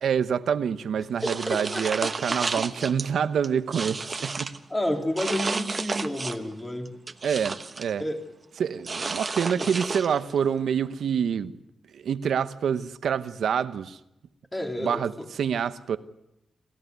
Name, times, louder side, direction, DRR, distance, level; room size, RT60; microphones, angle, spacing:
voice 1, 0.0-4.6 7.2-8.0 8.6-11.5 11.9-14.0 14.8-16.0, right 7 dB, 85° right, 12 dB, 0.9 m, -27 dB
voice 2, 1.2-2.1 4.7-6.9 8.0-8.2 9.6-9.7 14.5-15.3, left 1 dB, 15° left, 3 dB, 3.0 m, -30 dB
sound 1, 1.2-3.1 3.4-4.6 5.2-6.5 6.8-7.9 8.8-10.4, right 4 dB, 35° right, 1.2 m, -32 dB
27.5 x 15.5 x 9.4 m, 0.89 s
wide cardioid pair, 110°, 0 cm